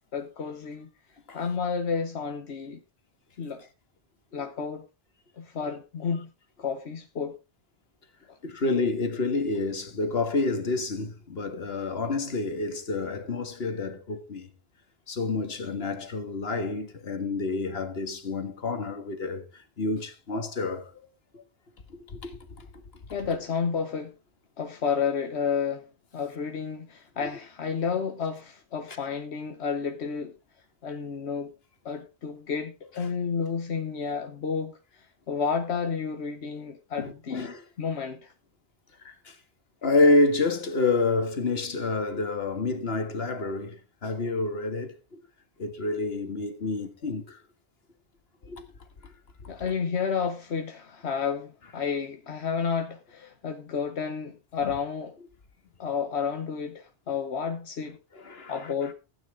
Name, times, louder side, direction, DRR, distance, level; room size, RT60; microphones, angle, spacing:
voice 1, 0.1-0.9 1.3-2.8 3.4-3.6 4.3-4.8 5.4-6.3 6.6-7.4 8.3-8.4 23.1-24.1 24.6-25.9 26.1-30.3 30.8-31.5 31.8-34.8 35.3-38.3 49.5-55.1 55.8-58.0 58.5-58.9, left 6 dB, 90° left, 1.3 m, -31 dB
voice 2, 8.4-14.5 15.1-21.1 21.3-21.4 22.1-22.7 27.2-27.3 37.0-37.6 39.0-39.4 39.8-45.2 45.6-47.4 48.5-48.6 49.0-49.1 49.4-49.5 54.6-54.7 58.1-58.9, left 3 dB, 70° left, 1.9 m, -28 dB
15.5 x 9.1 x 3.7 m
omnidirectional pair, 1.1 m